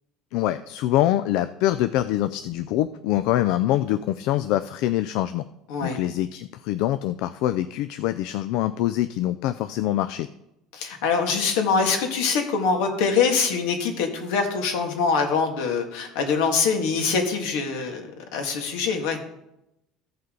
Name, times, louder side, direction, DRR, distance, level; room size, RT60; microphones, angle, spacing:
voice 1, 0.3-5.4 5.8-10.3, left 13 dB, 65° left, 11 dB, 0.3 m, -24 dB
voice 2, 10.7-18.1 18.3-19.2, left 5 dB, 80° left, 4 dB, 1.8 m, -24 dB
15.0 x 5.5 x 3.8 m, 0.85 s
cardioid pair, 165°, 0 cm